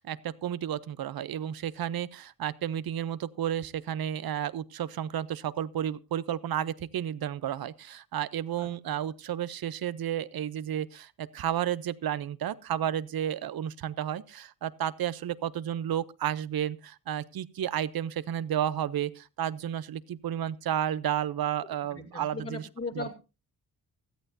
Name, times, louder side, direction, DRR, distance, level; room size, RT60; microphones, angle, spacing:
voice 1, 0.0-22.7 23.0-23.1, right 10 dB, 70° right, 18 dB, 0.7 m, -32 dB
voice 2, 21.9-23.1, left 3 dB, 40° left, 1 dB, 2.5 m, -38 dB
17.0 x 13.5 x 2.7 m, 0.30 s
cardioid pair, 95°, 37 cm